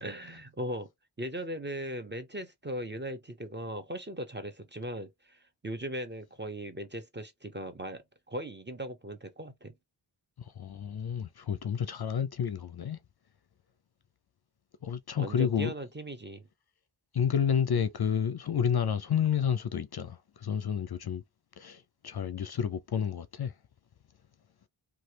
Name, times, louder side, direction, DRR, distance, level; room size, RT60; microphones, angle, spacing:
voice 1, 0.0-0.9 1.2-9.7 15.2-16.4, right 1 dB, 20° right, 0.7 m, -38 dB
voice 2, 10.4-13.0 14.8-15.7 17.1-21.2 21.6-23.6, left 8 dB, 50° left, 0.5 m, -30 dB
3.1 x 2.4 x 2.8 m
wide cardioid pair, 70°, 50 cm